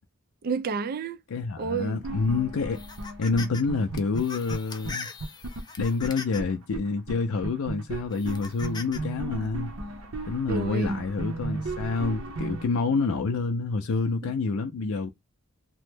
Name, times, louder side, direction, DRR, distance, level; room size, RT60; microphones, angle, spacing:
voice 1, 0.4-1.2 1.6-2.0 10.5-11.0 14.2-14.3, right 4 dB, 45° right, 0.4 m, -30 dB
voice 2, 1.3-2.8 3.2-5.1 5.8-9.7 10.3-15.1, left 4 dB, 75° left, 0.4 m, -28 dB
sound 1, 2.0-4.6 4.8-4.9 5.2-6.8 7.1-7.2 7.4-12.7, right 2 dB, 75° right, 0.7 m, -35 dB
sound 2, 2.7-3.6 4.0-6.6 7.2-7.3 8.1-9.0, left 4 dB, 20° left, 0.4 m, -40 dB
3.0 x 2.0 x 3.2 m
head